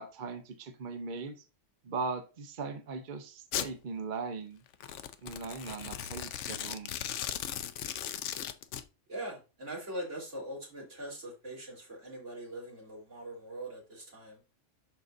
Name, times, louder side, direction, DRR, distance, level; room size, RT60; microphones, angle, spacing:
voice 1, 0.0-1.4 1.8-4.6 5.2-6.9, right 4 dB, 45° right, 0.8 m, -39 dB
Domestic sounds home sounds, 3.5-3.7 4.7-8.8, left 10 dB, 75° left, 0.9 m, -37 dB
voice 2, 9.1-14.4, right 1 dB, 80° right, 3.7 m, -42 dB
11.5 x 4.0 x 2.6 m
omnidirectional pair, 1.2 m